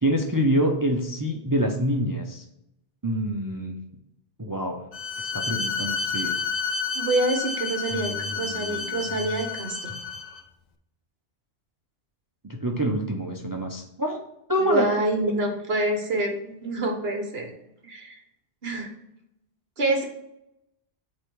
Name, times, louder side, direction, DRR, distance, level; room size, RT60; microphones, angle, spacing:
voice 1, 0.0-2.4 3.0-3.7 4.4-4.9 5.2-6.4 7.9-9.3 12.4-14.2 14.5-14.9, equal, 25° right, 2 dB, 0.5 m, -26 dB
Bowed string instrument, 4.9-10.4, left 5 dB, 50° left, 0.6 m, -30 dB
voice 2, 6.9-9.8 14.6-17.5 17.8-18.2 18.6-18.9 19.8-20.0, right 1 dB, 55° right, 3 dB, 1.4 m, -26 dB
8.3 x 3.1 x 4.6 m, 0.84 s
omnidirectional pair, 1.2 m